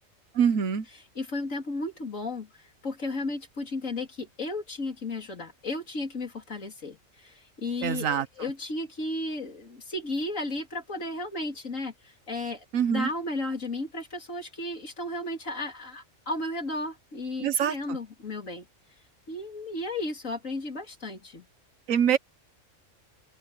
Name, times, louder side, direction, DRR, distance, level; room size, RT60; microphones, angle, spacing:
voice 1, 0.3-0.8 7.8-8.3 12.7-13.1 17.4-18.0 21.9-22.2, right 8 dB, 85° right, 1.4 m, -24 dB
voice 2, 1.2-18.7 19.3-21.4, left 2 dB, 75° left, 3.8 m, -34 dB
open air
omnidirectional pair, 1.4 m